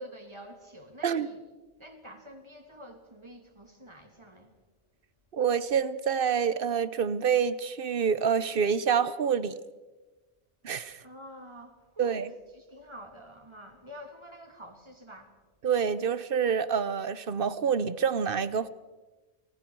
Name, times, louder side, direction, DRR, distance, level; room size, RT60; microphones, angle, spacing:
voice 1, 0.0-1.4 1.8-4.5 11.0-12.2 12.5-15.4, equal, 25° right, 2.6 m, -48 dB
voice 2, 5.3-9.5 10.6-11.0 12.0-12.3 15.6-18.7, right 7 dB, 55° right, 0.9 m, -27 dB
28.5 x 19.5 x 4.6 m
omnidirectional pair, 1.2 m